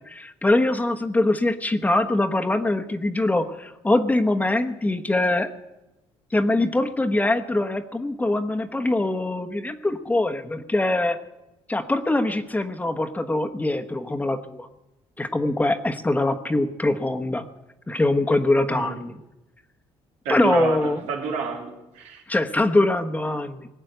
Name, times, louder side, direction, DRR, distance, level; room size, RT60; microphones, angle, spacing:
voice 1, 0.1-5.5 6.3-11.2 11.7-14.7 15.2-17.4 17.9-19.2 20.3-21.0 22.3-23.7, left 2 dB, 15° left, 6 dB, 1.2 m, -23 dB
voice 2, 20.2-22.2, right 6 dB, 90° right, 1 dB, 3.0 m, -29 dB
20.0 x 8.2 x 8.0 m, 0.97 s
cardioid pair, 95°, 11 cm